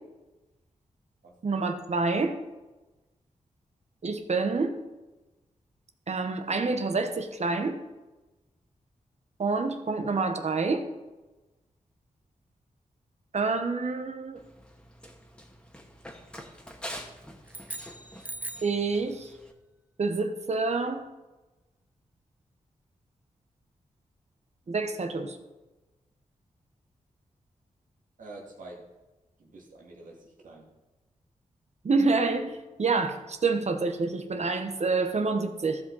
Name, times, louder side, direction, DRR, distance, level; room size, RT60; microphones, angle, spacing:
voice 1, 1.4-2.4 4.0-4.9 6.1-7.8 9.4-10.8 13.3-14.4 18.6-19.3 20.0-21.0 24.7-25.4 31.8-35.8, right 4 dB, 55° right, 7 dB, 1.2 m, -27 dB
Run, 14.4-19.5, equal, 5° left, 1.7 m, -46 dB
sound 1, 17.5-18.8, right 1 dB, 10° right, 0.4 m, -40 dB
voice 2, 28.2-28.8 29.4-30.7, right 2 dB, 80° right, -1 dB, 2.3 m, -47 dB
14.5 x 5.3 x 4.1 m, 1.1 s
cardioid pair, 45°, 13 cm